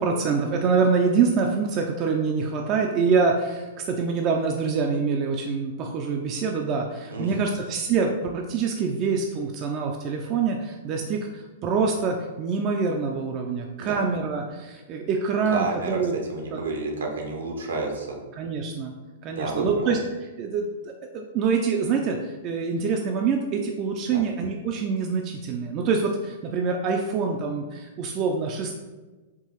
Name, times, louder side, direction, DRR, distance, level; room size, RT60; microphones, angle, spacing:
voice 1, 0.0-16.1 16.5-16.6 18.4-18.9 19.2-20.0 20.4-28.7, right 5 dB, 35° right, 2 dB, 0.4 m, -25 dB
voice 2, 7.1-7.5 13.8-14.0 15.5-16.0 16.3-18.2 19.3-20.0 24.1-24.2, right 3 dB, 70° right, 1 dB, 0.8 m, -30 dB
4.5 x 3.0 x 3.0 m, 1.2 s
figure-of-eight pair, 105°, 0 cm